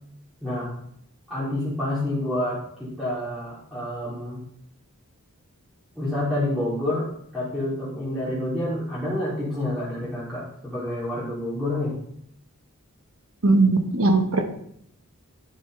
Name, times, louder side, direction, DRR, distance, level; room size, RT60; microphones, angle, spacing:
voice 1, 0.4-0.7 1.3-4.4 5.9-7.1 7.3-12.0, left 1 dB, ahead, -10 dB, 3.0 m, -28 dB
voice 2, 13.4-14.4, right 3 dB, 70° right, 6 dB, 1.3 m, -19 dB
11.5 x 7.5 x 3.3 m, 0.68 s
head